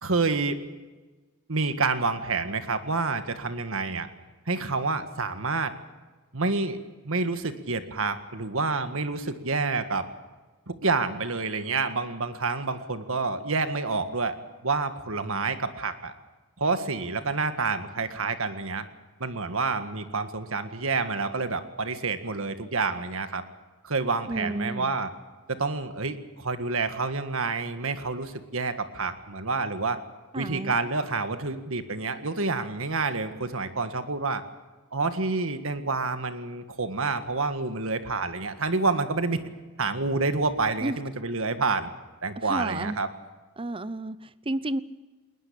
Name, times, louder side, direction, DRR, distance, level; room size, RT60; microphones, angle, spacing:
voice 1, 0.0-0.6 1.5-4.1 4.5-5.7 6.3-6.8 7.0-10.1 10.7-14.4 14.6-16.1 16.6-18.8 19.2-23.4 23.8-25.1 25.5-30.0 30.3-34.4 34.9-39.4 39.8-41.9 42.2-43.1, right 3 dB, 65° right, 9 dB, 1.7 m, -28 dB
voice 2, 24.3-24.9 30.3-30.7 40.8-41.0 42.4-43.0 43.6-44.8, right 2 dB, 25° right, 17 dB, 0.8 m, -31 dB
20.5 x 20.0 x 8.7 m, 1.3 s
head